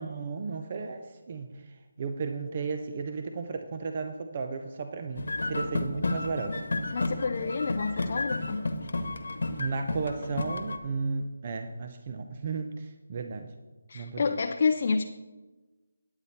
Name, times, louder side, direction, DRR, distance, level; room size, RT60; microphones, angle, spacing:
voice 1, 0.0-6.6 9.6-13.5 13.9-14.2, right 4 dB, 35° right, 6 dB, 0.6 m, -34 dB
sound 1, 5.2-10.8, left 2 dB, 75° left, 1.1 m, -32 dB
voice 2, 6.9-8.7 13.9-15.0, left 4 dB, 45° left, 6 dB, 0.4 m, -29 dB
10.0 x 8.8 x 4.2 m, 1.2 s
figure-of-eight pair, 165°, 0 cm